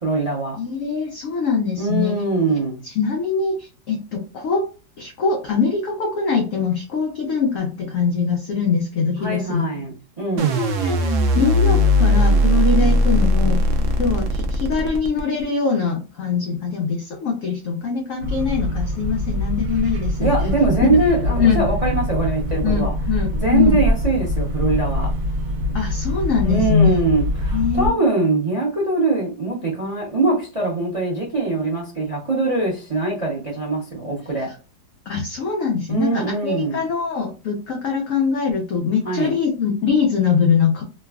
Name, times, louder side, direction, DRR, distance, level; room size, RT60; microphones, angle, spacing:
voice 1, 0.0-0.6 1.8-2.8 9.2-10.6 20.2-22.9 23.3-25.1 26.4-34.5 35.9-36.8 39.0-39.3, right 3 dB, 40° right, 0.4 m, -22 dB
voice 2, 0.6-2.2 3.0-4.7 5.0-9.6 10.6-13.6 14.0-20.3 21.4-21.6 22.6-23.8 25.7-26.9 27.5-28.0 35.1-40.8, left 5 dB, 85° left, 0.7 m, -22 dB
sound 1, 10.4-15.4, equal, 80° right, 0.7 m, -18 dB
sound 2, 18.2-27.9, left 1 dB, 60° right, 1.0 m, -24 dB
3.1 x 2.3 x 2.2 m
omnidirectional pair, 2.0 m